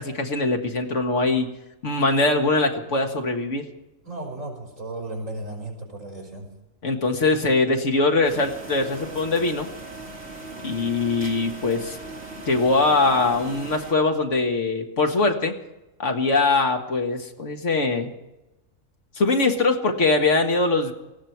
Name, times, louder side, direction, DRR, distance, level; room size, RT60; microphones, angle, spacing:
voice 1, 0.0-1.5 1.8-3.7 6.8-9.7 10.6-12.0 12.5-15.6 16.0-18.1 19.2-20.9, left 3 dB, 65° left, 4 dB, 1.9 m, -22 dB
voice 2, 4.0-6.5, right 2 dB, 70° right, 1 dB, 5.2 m, -35 dB
sound 1, 8.2-13.9, right 2 dB, 55° right, 3.0 m, -39 dB
18.5 x 16.0 x 4.6 m, 0.98 s
omnidirectional pair, 1.4 m